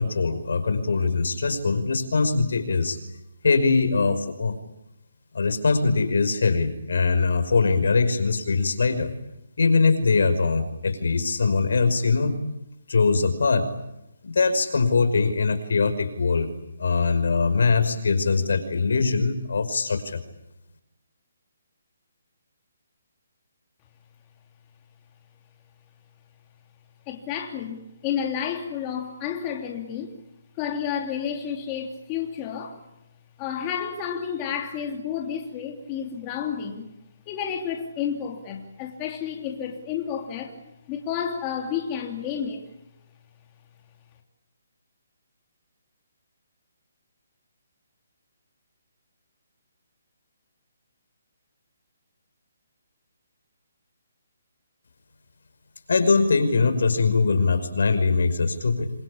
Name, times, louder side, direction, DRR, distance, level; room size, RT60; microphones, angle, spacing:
voice 1, 0.0-3.0 3.4-4.6 5.3-9.1 9.6-12.4 12.9-13.7 14.2-16.5 16.8-20.2 55.9-58.9, left 4 dB, 75° left, 5.6 m, -22 dB
voice 2, 27.1-30.1 30.6-32.8 33.4-36.9 37.3-40.6 40.9-42.7, left 8 dB, 20° left, 3.0 m, -31 dB
28.0 x 24.0 x 8.6 m
hypercardioid pair, 170°, 0 cm